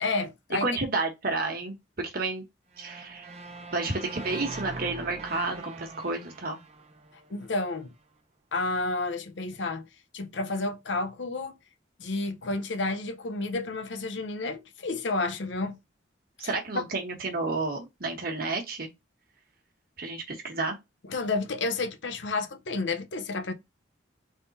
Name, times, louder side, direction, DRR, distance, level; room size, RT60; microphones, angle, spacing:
voice 1, 0.0-0.7 7.3-7.9 8.5-9.9 10.1-11.5 12.0-15.8 16.7-16.8 21.1-23.5, left 3 dB, 70° left, 0.8 m, -30 dB
voice 2, 0.6-2.4 2.8-3.2 3.7-6.6 16.4-18.9 20.0-20.8, right 3 dB, 50° right, 1.3 m, -31 dB
sound 1, 2.7-7.8, right 3 dB, 35° right, 0.7 m, -42 dB
3.7 x 3.3 x 4.1 m
head